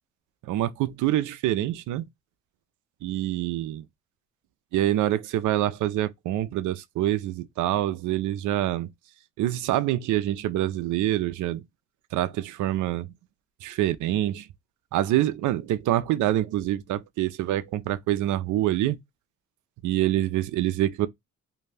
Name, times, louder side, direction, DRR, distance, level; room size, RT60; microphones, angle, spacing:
voice 1, 0.4-2.0 3.0-3.8 4.7-8.9 9.4-11.6 12.1-13.1 13.6-14.5 14.9-19.0 19.8-21.1, right 14 dB, 75° right, 0.5 m, -26 dB
2.6 x 2.2 x 3.2 m
cardioid pair, 90°, 30 cm